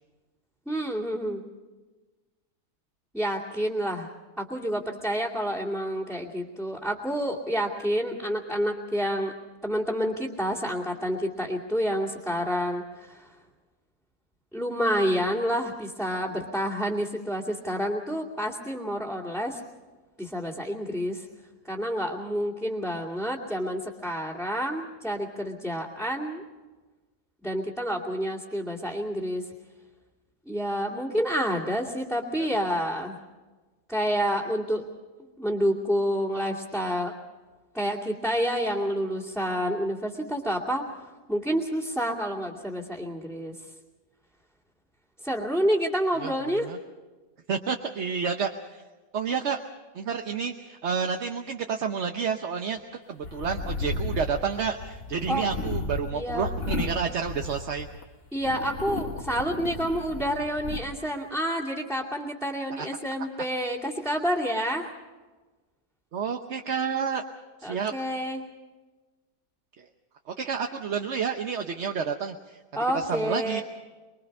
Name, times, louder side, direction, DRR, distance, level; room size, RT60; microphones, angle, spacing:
voice 1, 0.7-1.4 3.1-4.1 4.4-9.3 9.6-13.2 14.5-19.6 20.2-21.2 21.6-26.4 27.4-29.5 30.5-33.2 33.9-34.8 35.4-37.1 37.7-40.8 41.3-43.5 45.2-46.7 55.3-55.4 56.1-56.5 58.3-64.9 67.6-68.4 72.7-73.6, equal, ahead, -4 dB, 2.3 m, -28 dB
voice 2, 47.5-48.5 49.1-49.6 49.9-52.8 53.1-57.9 62.8-62.9 66.1-67.2 67.6-67.9 70.4-72.6 72.9-73.6, right 6 dB, 50° right, 5 dB, 1.1 m, -29 dB
sound 1, 53.2-58.0 58.4-60.8, left 3 dB, 50° left, 1.8 m, -34 dB
24.5 x 23.0 x 5.4 m, 1.3 s
omnidirectional pair, 1.7 m